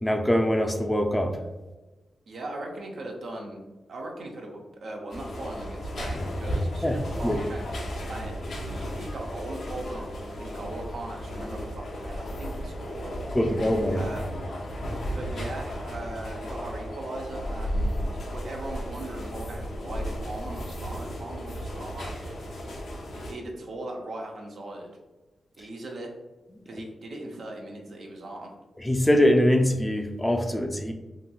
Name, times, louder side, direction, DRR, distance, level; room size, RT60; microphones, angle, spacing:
voice 1, 0.0-1.4 6.8-7.4 13.3-14.0 28.8-30.9, equal, 15° left, 4 dB, 0.4 m, -23 dB
voice 2, 2.3-3.6 3.9-13.1 13.9-14.5 15.2-22.3 23.1-24.9 25.6-26.1 26.7-28.5, right 1 dB, 70° right, 0 dB, 0.5 m, -39 dB
sound 1, 5.1-23.3, equal, 75° left, 0.5 m, -34 dB
2.9 x 2.6 x 2.3 m, 1.1 s
supercardioid pair, 45°, 0 cm